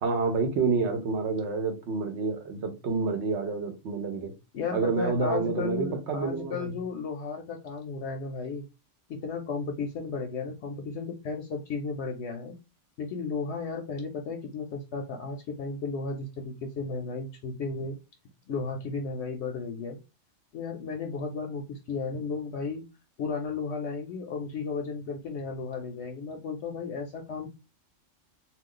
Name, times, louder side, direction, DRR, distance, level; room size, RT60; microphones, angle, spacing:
voice 1, 0.0-4.3 4.7-6.7, right 4 dB, 65° right, 1.0 m, -28 dB
voice 2, 4.5-8.6 9.1-12.5 13.0-18.0 18.5-20.0 20.5-22.8 23.2-27.5, left 4 dB, 70° left, 0.8 m, -34 dB
2.4 x 2.3 x 3.7 m
omnidirectional pair, 1.3 m